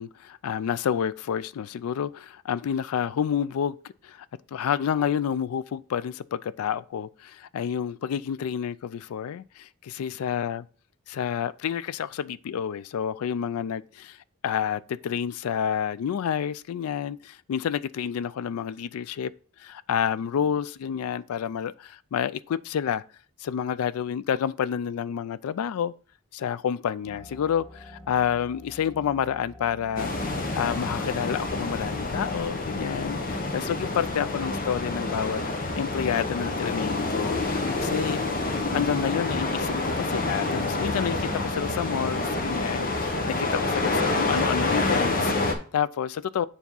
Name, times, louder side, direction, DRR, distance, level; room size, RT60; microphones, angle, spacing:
voice 1, 0.0-3.8 4.0-4.3 4.5-9.7 10.0-10.6 11.1-14.2 14.4-19.3 19.6-23.0 23.4-25.9 26.3-30.1 30.5-35.4 35.7-37.4 37.8-38.2 38.7-46.5, left 8 dB, 75° left, 0.3 m, -29 dB
sound 1, 27.0-32.5, equal, 5° left, 1.6 m, -47 dB
sound 2, 30.0-45.5, left 2 dB, 40° left, 0.8 m, -28 dB
7.1 x 3.5 x 5.4 m
head